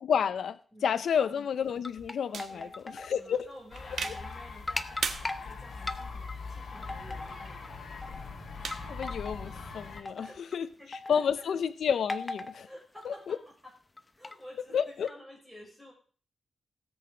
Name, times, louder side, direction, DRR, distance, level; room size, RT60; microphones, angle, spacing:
voice 1, 0.0-0.6 0.8-3.5 8.9-10.3 10.5-10.7 11.1-12.7 13.0-13.4 14.7-15.1, left 7 dB, 85° left, 0.6 m, -30 dB
voice 2, 0.7-1.3 2.3-2.8 3.2-8.2 8.8-9.0 10.1-11.5 12.6-13.7 14.1-15.9, equal, ahead, 6.2 m, -52 dB
sound 1, 1.6-3.1 3.4-3.5 3.9-4.4 4.7-5.4 5.9-6.4 6.8-7.7 8.0-8.3 8.7-9.5 10.0-10.6 10.9-11.4 12.1-12.6 13.0-13.3 14.0-14.3 15.1-15.2, left 2 dB, 20° left, 0.7 m, -38 dB
sound 2, 2.3-9.9, right 6 dB, 75° right, 1.2 m, -42 dB
sound 3, 3.7-10.0, left 4 dB, 65° left, 2.4 m, -42 dB
17.0 x 7.8 x 5.0 m
wide cardioid pair, 160°, 0 cm